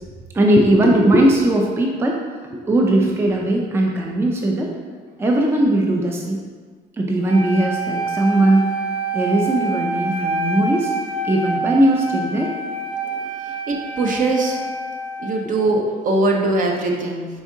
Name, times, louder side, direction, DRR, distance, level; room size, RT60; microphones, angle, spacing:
voice 1, 0.3-2.2 2.7-4.7 5.2-6.4 7.0-8.7 9.1-10.9 11.2-12.5, right 1 dB, 15° right, 0 dB, 0.4 m, -18 dB
Wind instrument woodwind instrument, 7.2-15.5, right 2 dB, 70° right, 1.1 m, -27 dB
voice 2, 13.7-14.6 15.2-17.3, right 2 dB, 50° right, 1 dB, 0.7 m, -21 dB
4.7 x 3.5 x 2.6 m, 1.5 s
cardioid pair, 110°, 17 cm